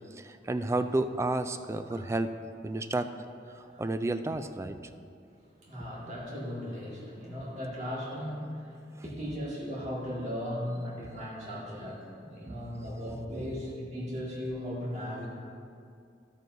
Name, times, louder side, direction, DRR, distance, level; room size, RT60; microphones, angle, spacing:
voice 1, 0.2-2.3 2.6-3.1 3.6-4.8 12.4-12.9, right 2 dB, 15° right, 9 dB, 0.3 m, -31 dB
voice 2, 5.6-15.3, equal, 40° right, -5 dB, 2.0 m, -37 dB
12.0 x 9.1 x 2.7 m, 2.4 s
head